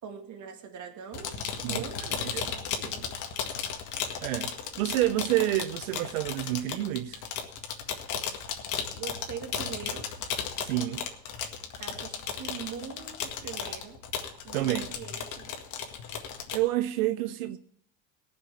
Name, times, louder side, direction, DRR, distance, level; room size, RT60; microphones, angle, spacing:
voice 1, 0.0-3.1 8.9-10.0 11.8-14.0 14.4-15.6, right 8 dB, 45° right, 2.2 m, -42 dB
sound 1, 1.1-16.6, left 7 dB, 50° left, 1.9 m, -35 dB
voice 2, 4.2-7.2 10.6-11.1 14.5-14.9 16.5-17.6, right 15 dB, 90° right, 0.7 m, -28 dB
18.0 x 6.2 x 7.2 m
supercardioid pair, 100°, 40 cm